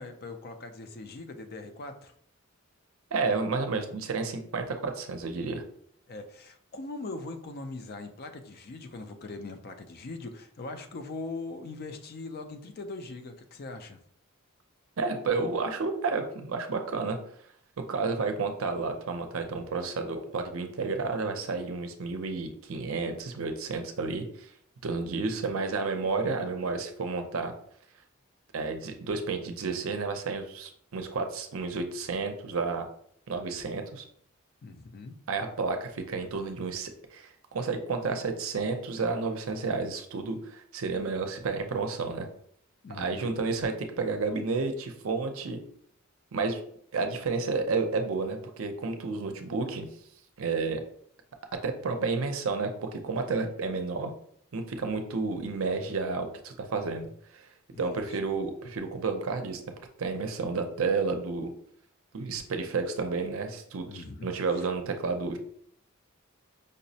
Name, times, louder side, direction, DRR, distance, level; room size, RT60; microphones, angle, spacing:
voice 1, 0.0-2.1 6.1-14.0 34.6-35.1 42.8-43.4 57.7-58.1 63.9-64.3, left 3 dB, 45° left, 7 dB, 0.4 m, -41 dB
voice 2, 3.1-5.6 15.0-17.2 17.9-24.5 24.8-27.5 28.5-32.9 33.3-34.0 35.3-42.3 42.9-45.6 46.3-46.6 46.9-49.9 50.4-50.8 51.6-54.1 54.5-57.5 57.8-59.6 60.0-61.5 62.1-65.4, right 4 dB, 65° right, 6 dB, 0.5 m, -31 dB
5.2 x 2.0 x 2.7 m, 0.64 s
head